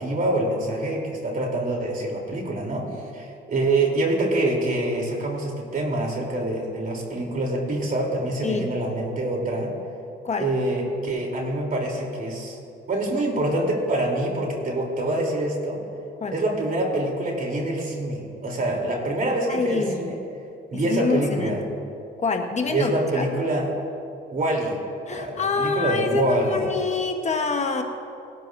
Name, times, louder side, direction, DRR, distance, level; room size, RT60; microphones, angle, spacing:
voice 1, 0.0-2.9 3.1-9.7 10.4-12.6 12.9-15.8 16.3-20.1 20.7-21.6 22.7-23.7 24.3-24.8 25.1-26.6, right 2 dB, 45° right, -1 dB, 3.2 m, -25 dB
voice 2, 19.5-20.0 20.8-21.6 22.2-23.3 25.1-27.8, left 4 dB, 35° left, 4 dB, 1.1 m, -26 dB
20.0 x 12.0 x 2.6 m, 2.5 s
cardioid pair, 90°, 20 cm